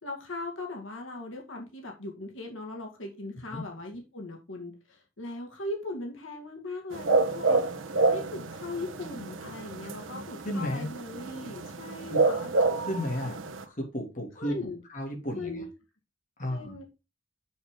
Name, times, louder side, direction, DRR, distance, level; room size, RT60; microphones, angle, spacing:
voice 1, 0.0-7.6 8.1-12.5 14.4-14.8 15.3-15.7 16.5-16.8, left 2 dB, 85° left, 1 dB, 2.2 m, -39 dB
sound 1, 6.9-13.6, right 3 dB, 90° right, 1.1 m, -28 dB
voice 2, 10.4-10.9 12.1-12.2 12.8-15.6 16.4-16.8, left 1 dB, 40° left, 1 dB, 2.8 m, -33 dB
7.0 x 6.5 x 3.8 m, 0.28 s
head